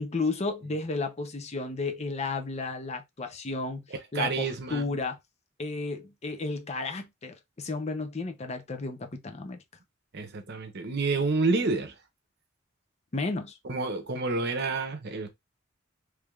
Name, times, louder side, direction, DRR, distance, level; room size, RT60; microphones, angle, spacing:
voice 1, 0.0-3.8 4.1-5.2 5.6-9.6 13.1-13.6, left 3 dB, 35° left, 0.6 m, -33 dB
voice 2, 4.1-4.9 10.1-11.9 13.6-15.3, right 3 dB, 55° right, 0.8 m, -29 dB
3.4 x 3.2 x 2.3 m
head